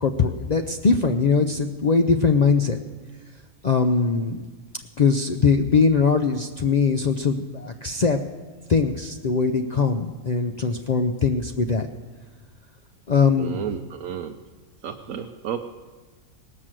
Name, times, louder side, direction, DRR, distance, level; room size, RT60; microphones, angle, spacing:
voice 1, 0.0-2.8 3.6-4.5 5.0-8.2 8.7-11.9 13.1-13.7, left 5 dB, 75° left, 5 dB, 0.3 m, -21 dB
voice 2, 13.3-14.4 14.8-15.6, right 9 dB, 70° right, 5 dB, 1.0 m, -32 dB
19.0 x 6.3 x 7.4 m, 1.3 s
omnidirectional pair, 1.5 m